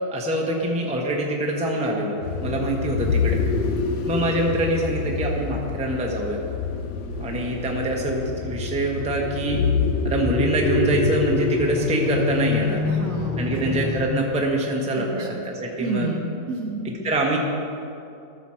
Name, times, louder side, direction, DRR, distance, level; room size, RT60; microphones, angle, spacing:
voice 1, 0.1-3.4 4.1-6.4 7.2-9.6 10.0-12.8 13.4-16.1 16.8-17.4, right 1 dB, 5° right, -1 dB, 0.7 m, -25 dB
sound 1, 2.2-14.4, left 4 dB, 85° left, 1.4 m, -26 dB
voice 2, 12.8-13.8 14.9-15.4 15.8-16.9, right 3 dB, 60° right, 1 dB, 1.2 m, -30 dB
14.0 x 6.2 x 4.3 m, 2.6 s
omnidirectional pair, 1.8 m